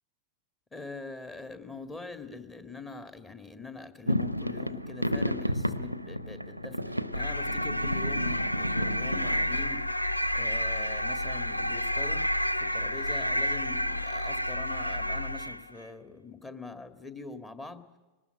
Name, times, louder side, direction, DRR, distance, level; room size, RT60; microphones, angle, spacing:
voice 1, 0.7-9.8 10.3-12.3 12.6-17.8, left 4 dB, 15° left, 10 dB, 1.9 m, -43 dB
sound 1, 4.1-9.6, equal, 90° right, 0.8 m, -32 dB
sound 2, 7.1-15.7, left 1 dB, 85° left, 0.6 m, -30 dB
22.0 x 19.5 x 9.0 m, 1.2 s
figure-of-eight pair, 90°, 0 cm